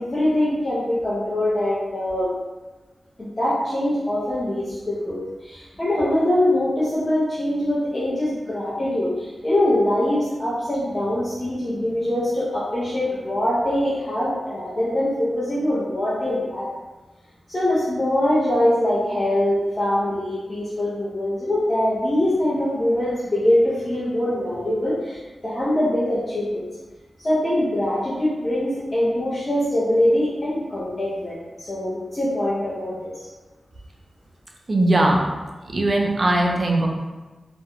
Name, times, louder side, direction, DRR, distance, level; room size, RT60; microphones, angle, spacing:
voice 1, 0.0-2.3 3.2-16.7 17.5-26.7 27.2-33.3, left 1 dB, 20° left, -10 dB, 0.5 m, -23 dB
voice 2, 34.7-35.2 35.7-36.9, right 1 dB, 30° right, 0 dB, 0.3 m, -19 dB
2.4 x 2.1 x 2.9 m, 1.2 s
wide cardioid pair, 175°, 0 cm